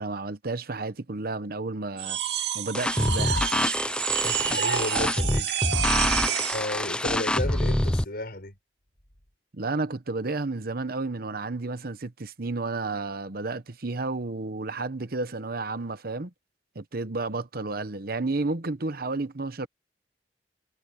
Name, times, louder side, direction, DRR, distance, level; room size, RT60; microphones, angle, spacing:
voice 1, 0.0-2.2 2.5-3.4 9.5-16.3 16.7-19.7, right 3 dB, 60° right, 1.0 m, -31 dB
sound 1, 2.0-6.7, right 8 dB, 75° right, 2.6 m, -29 dB
sound 2, 2.7-8.0, left 1 dB, 5° left, 0.4 m, -26 dB
voice 2, 4.1-5.5 6.5-8.6, left 1 dB, 60° left, 6.3 m, -33 dB
head